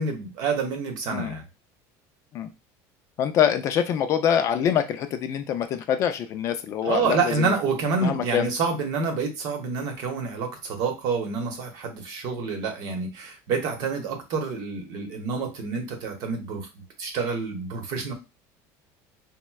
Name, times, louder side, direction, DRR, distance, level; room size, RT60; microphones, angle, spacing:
voice 1, 0.0-1.4 6.8-16.7 17.0-18.1, right 4 dB, 50° right, 4 dB, 0.8 m, -28 dB
voice 2, 3.2-7.5 8.0-8.5, left 9 dB, 35° left, 8 dB, 0.3 m, -25 dB
4.3 x 2.1 x 2.3 m, 0.26 s
cardioid pair, 165°, 8 cm